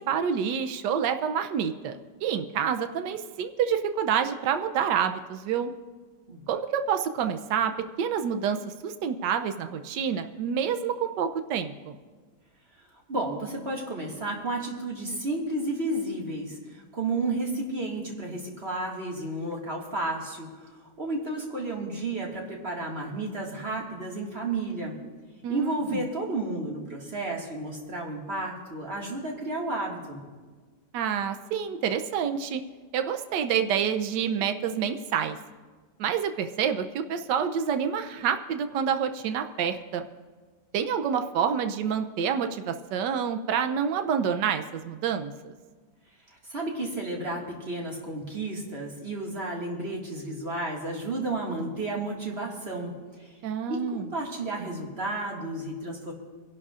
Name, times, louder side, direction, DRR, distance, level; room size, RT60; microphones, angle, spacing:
voice 1, 0.1-2.0 2.2-5.7 6.5-7.7 8.0-12.0 25.4-26.0 30.9-32.6 32.9-35.4 36.0-40.1 40.7-45.5 53.4-54.1, right 7 dB, 80° right, 7 dB, 1.3 m, -28 dB
voice 2, 13.1-16.5 16.9-20.5 21.0-24.9 25.5-30.2 46.5-52.9 53.7-56.1, right 2 dB, 35° right, -2 dB, 2.1 m, -32 dB
26.0 x 11.5 x 2.5 m, 1.4 s
omnidirectional pair, 1.8 m